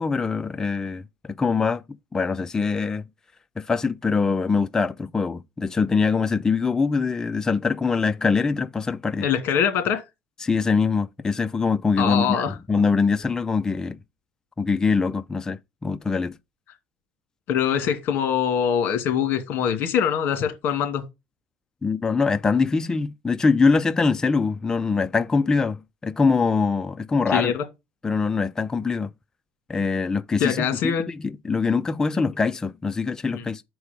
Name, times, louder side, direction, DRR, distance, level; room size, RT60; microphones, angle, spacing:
voice 1, 0.0-1.8 2.1-3.0 3.6-9.3 10.4-14.0 14.6-16.4 21.8-27.5 28.0-29.1 29.7-33.6, left 4 dB, 15° left, 0.4 m, -23 dB
voice 2, 9.2-10.0 12.0-12.5 17.5-21.0 27.3-27.6 30.4-31.0 33.3-33.5, left 8 dB, 50° left, 2.2 m, -23 dB
6.4 x 4.7 x 5.1 m
cardioid pair, 130°, 4 cm